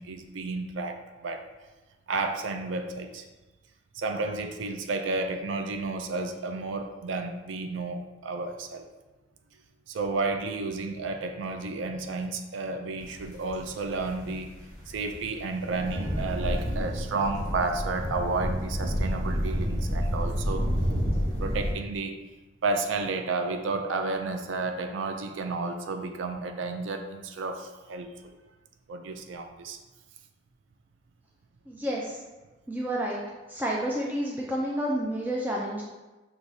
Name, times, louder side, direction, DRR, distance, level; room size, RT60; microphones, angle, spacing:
voice 1, 0.0-1.4 2.1-3.2 3.9-8.9 9.9-14.5 14.9-20.7 21.4-22.2 22.6-28.3 28.9-29.8, right 3 dB, 90° right, 6 dB, 0.4 m, -32 dB
sound 1, 13.0-21.7, equal, 55° right, 1.2 m, -30 dB
voice 2, 31.7-32.2 32.7-33.2 33.5-35.8, equal, 10° right, -4 dB, 0.4 m, -30 dB
6.1 x 3.0 x 2.7 m, 1.1 s
head